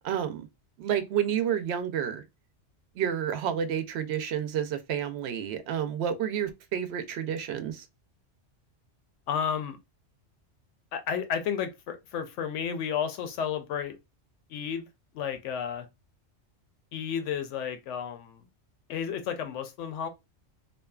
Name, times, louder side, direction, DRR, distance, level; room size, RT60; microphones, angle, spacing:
voice 1, 0.0-0.5 0.8-2.2 3.0-7.8, right 9 dB, 70° right, 0.8 m, -30 dB
voice 2, 9.3-9.8 10.9-13.9 14.5-14.9 15.1-15.9 16.9-18.4 18.9-20.1, left 7 dB, 85° left, 0.9 m, -32 dB
2.6 x 2.3 x 2.2 m
omnidirectional pair, 1.2 m